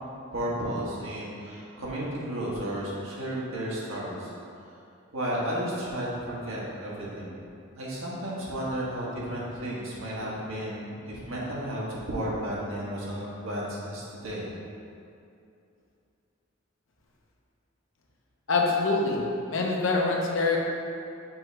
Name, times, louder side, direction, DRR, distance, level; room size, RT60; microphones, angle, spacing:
voice 1, 0.3-4.3 5.1-7.4 7.8-14.5, right 1 dB, 80° right, -6 dB, 1.5 m, -33 dB
voice 2, 18.5-19.2 19.5-20.6, left 3 dB, 70° left, -1 dB, 0.9 m, -25 dB
6.1 x 3.3 x 5.0 m, 2.6 s
head